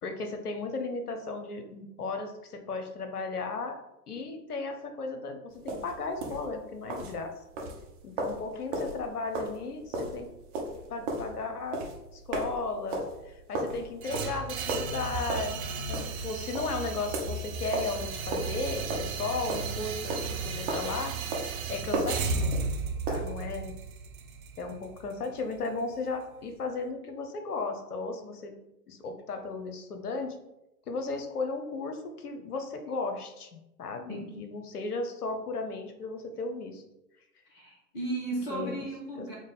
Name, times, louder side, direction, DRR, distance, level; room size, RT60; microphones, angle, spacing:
voice 1, 0.0-3.8 4.1-7.3 8.0-10.3 10.9-11.8 12.1-21.1 21.7-22.7 23.1-23.7 24.6-28.5 28.9-30.4 30.9-36.8 38.5-38.9 39.2-39.3, left 3 dB, 65° left, 6 dB, 0.7 m, -35 dB
sound 1, 5.6-23.4, right 2 dB, 30° right, 0.8 m, -36 dB
sound 2, 14.0-26.1, right 5 dB, 60° right, 0.6 m, -35 dB
voice 2, 34.1-34.5 37.5-39.3, right 2 dB, 10° left, -4 dB, 0.4 m, -35 dB
4.7 x 2.1 x 4.0 m, 0.92 s
figure-of-eight pair, 105°, 48 cm